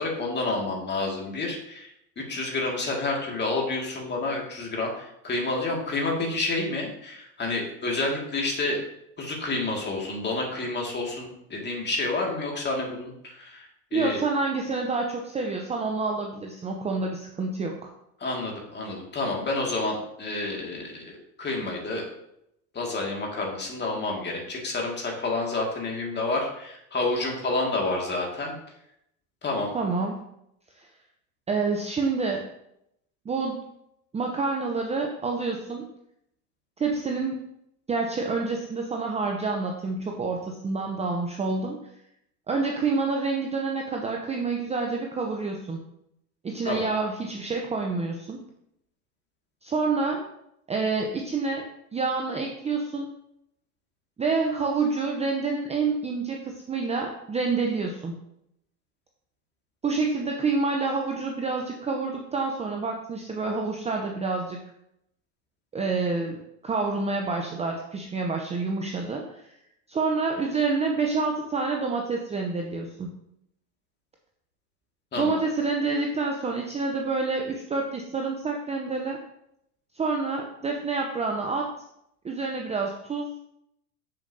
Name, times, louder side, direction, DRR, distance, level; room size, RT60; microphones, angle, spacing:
voice 1, 0.0-1.9 2.2-8.8 9.2-14.2 18.2-22.0 22.7-28.5 29.4-29.7 46.6-46.9 75.1-75.4, left 2 dB, 25° left, -1 dB, 2.1 m, -29 dB
voice 2, 13.9-17.9 29.7-30.2 30.8-30.9 31.5-32.4 33.3-33.7 34.1-35.9 36.8-37.5 37.9-41.8 42.5-45.8 46.4-48.4 49.6-50.2 50.7-51.6 51.9-53.1 54.2-58.1 59.8-64.6 65.7-66.4 66.6-69.5 69.9-73.1 75.1-79.2 79.9-81.7 82.2-83.4, right 4 dB, 15° right, 1 dB, 0.7 m, -28 dB
6.9 x 6.6 x 2.7 m, 0.78 s
hypercardioid pair, 100°, 45 cm